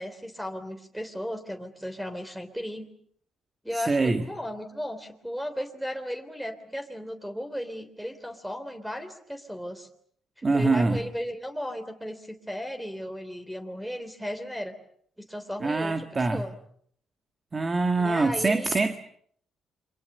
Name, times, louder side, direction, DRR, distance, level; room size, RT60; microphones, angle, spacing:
voice 1, 0.0-2.9 3.6-9.9 10.4-14.7 15.2-16.5 18.0-18.7, equal, 5° right, 7 dB, 3.4 m, -35 dB
voice 2, 3.7-4.3 10.4-11.0 15.6-16.5 17.5-18.9, right 3 dB, 30° right, 7 dB, 1.8 m, -24 dB
29.0 x 24.5 x 6.8 m, 0.64 s
cardioid pair, 90°, 0 cm